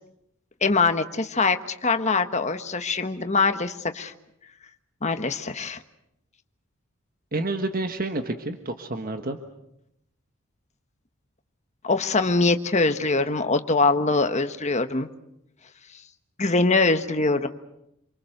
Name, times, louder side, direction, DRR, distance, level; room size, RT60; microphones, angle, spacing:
voice 1, 0.6-4.1 5.0-5.8 11.8-15.1 16.4-17.5, left 3 dB, 35° left, 8 dB, 1.3 m, -23 dB
voice 2, 7.3-9.4, right 2 dB, 45° right, 6 dB, 1.4 m, -29 dB
27.5 x 24.5 x 6.7 m, 0.81 s
head